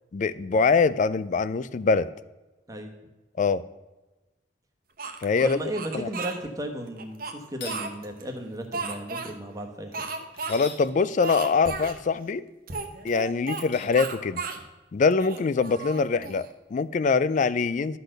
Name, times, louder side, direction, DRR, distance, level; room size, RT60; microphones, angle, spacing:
voice 1, 0.1-2.1 3.4-3.6 5.2-5.6 5.9-6.1 10.5-12.5 13.0-14.4 14.9-18.0, left 4 dB, 45° left, 17 dB, 0.3 m, -23 dB
Speech, 5.0-6.4 7.0-8.2 8.7-9.3 9.9-10.5 10.8-10.9 11.2-12.0 12.7-13.7 13.9-14.6 15.1-16.5, right 4 dB, 55° right, 1.0 m, -34 dB
voice 2, 5.4-10.0, right 1 dB, 20° right, 3 dB, 1.1 m, -35 dB
sound 1, 7.5-7.8 10.3-10.8 13.6-14.0, left 3 dB, 75° left, 1.8 m, -41 dB
12.0 x 4.2 x 6.5 m, 1.1 s
head